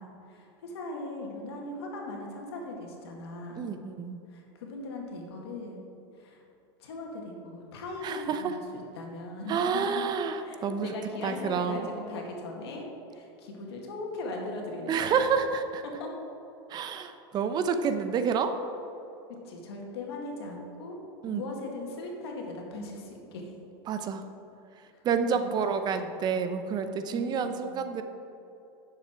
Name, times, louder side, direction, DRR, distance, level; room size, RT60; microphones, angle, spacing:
voice 1, 0.0-3.7 4.3-5.9 6.1-6.4 6.8-9.6 9.9-10.0 10.4-15.2 15.8-16.1 19.4-21.0 21.2-23.5 24.9-25.6 26.0-26.1 27.0-27.9, left 2 dB, 85° left, 0 dB, 2.0 m, -39 dB
voice 2, 3.6-4.2 8.0-8.6 9.5-10.9 11.2-11.9 14.9-15.8 16.7-18.6 21.2-21.4 23.9-24.3 25.0-28.0, right 6 dB, 30° right, 8 dB, 0.6 m, -29 dB
10.0 x 6.9 x 4.6 m, 2.8 s
supercardioid pair, 130°, 13 cm